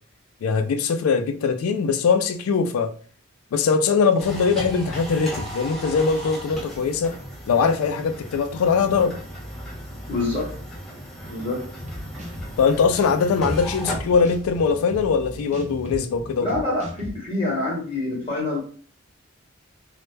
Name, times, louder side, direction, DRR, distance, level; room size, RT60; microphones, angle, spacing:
voice 1, 0.4-2.9 3.5-7.1 7.5-9.2 12.6-16.5, left 5 dB, 85° left, 0.3 m, -21 dB
sound 1, 4.2-15.9, equal, ahead, 0.8 m, -36 dB
voice 2, 10.1-10.5 11.3-11.6 16.4-18.6, left 2 dB, 30° left, 0.9 m, -26 dB
sound 2, 11.8-17.1, equal, 35° right, 0.6 m, -38 dB
2.1 x 2.1 x 3.1 m
head